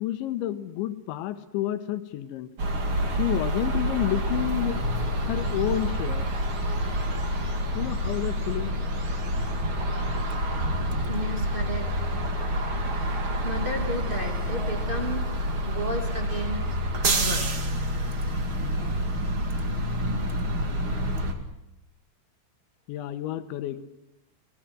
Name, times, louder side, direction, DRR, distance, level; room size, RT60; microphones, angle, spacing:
voice 1, 0.0-2.5 3.1-4.8 5.3-6.3 7.7-8.7 22.9-23.8, left 13 dB, 75° left, 10 dB, 3.3 m, -30 dB
sound 1, 2.6-21.3, equal, 40° right, 1.8 m, -28 dB
sound 2, 5.4-10.4, right 4 dB, 85° right, 7.4 m, -47 dB
voice 2, 11.0-11.9 13.4-17.5 18.7-19.1 19.5-19.6, equal, 20° right, 3 dB, 1.4 m, -34 dB
29.0 x 19.0 x 6.3 m, 0.90 s
omnidirectional pair, 5.8 m